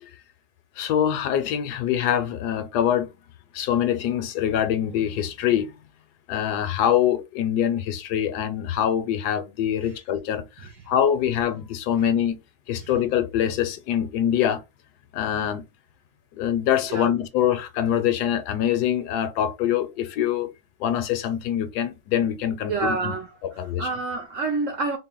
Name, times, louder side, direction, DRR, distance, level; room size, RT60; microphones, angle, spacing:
voice 1, 0.8-3.1 3.5-5.7 6.3-12.4 12.7-14.6 15.1-15.6 16.3-20.5 20.8-23.1 23.6-23.9, left 10 dB, 75° left, 1.1 m, -24 dB
voice 2, 22.7-25.0, right 3 dB, 65° right, 0.8 m, -28 dB
4.0 x 2.1 x 3.7 m
omnidirectional pair, 1.9 m